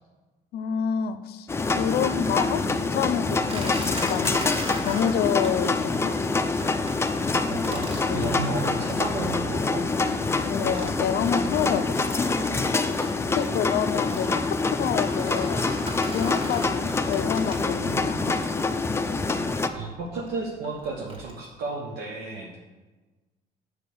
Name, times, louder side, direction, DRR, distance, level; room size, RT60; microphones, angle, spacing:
voice 1, 0.5-2.6 2.9-4.3 4.7-6.1 8.1-8.5 10.5-11.9 13.3-15.6 16.1-18.4, left 8 dB, 70° left, 11 dB, 0.6 m, -28 dB
sound 1, 1.5-19.7, left 3 dB, 15° left, 0.5 m, -26 dB
sound 2, 3.5-5.7 5.9-6.3 6.6-7.0 7.3-9.9 10.3-10.4 10.6-12.0 12.3-18.0 18.6-21.3, right 1 dB, 30° right, 1.6 m, -41 dB
voice 2, 7.5-10.2 19.7-22.6, right 3 dB, 80° right, -1 dB, 1.1 m, -33 dB
6.6 x 4.9 x 7.0 m, 1.2 s
cardioid pair, 110°, 17 cm